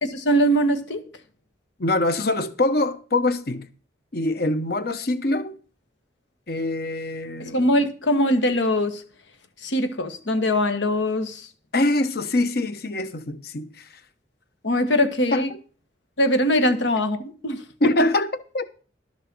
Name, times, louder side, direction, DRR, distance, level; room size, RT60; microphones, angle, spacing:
voice 1, 0.0-1.0 7.4-9.0 9.6-11.5 14.6-15.5 16.2-17.6, equal, 80° left, 1.5 m, -22 dB
voice 2, 1.8-3.7 4.1-5.6 6.5-7.6 11.7-14.0 15.3-15.5 17.8-18.6, left 2 dB, 55° left, 1.0 m, -24 dB
12.0 x 6.6 x 6.1 m
head